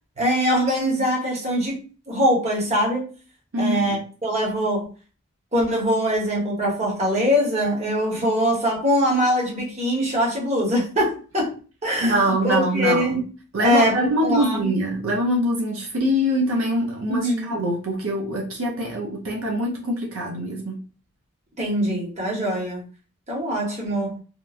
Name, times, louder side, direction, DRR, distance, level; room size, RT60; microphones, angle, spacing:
voice 1, 0.2-1.8 2.1-3.1 3.6-4.8 5.5-11.5 11.8-13.2 13.6-14.0 14.2-14.7 17.1-17.5 21.6-22.8 23.3-24.2, equal, 30° right, 0.9 m, -22 dB
voice 2, 3.5-4.0 12.0-13.2 13.5-20.9, equal, 70° right, 0.5 m, -24 dB
2.9 x 2.2 x 2.3 m
head